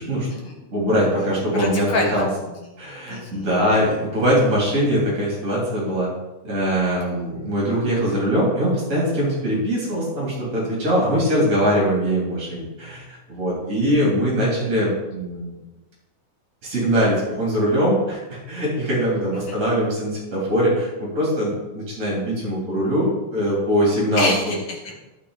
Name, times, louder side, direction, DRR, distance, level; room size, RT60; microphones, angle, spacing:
voice 1, 0.0-0.6 1.2-2.7 3.1-3.5 3.8-3.9 19.3-19.6 24.2-24.9, left 2 dB, 55° left, 1 dB, 1.8 m, -28 dB
voice 2, 0.7-2.3 2.8-6.1 6.4-15.6 16.6-24.3, equal, 25° right, -6 dB, 3.7 m, -22 dB
11.5 x 6.4 x 4.2 m, 1.0 s
omnidirectional pair, 3.6 m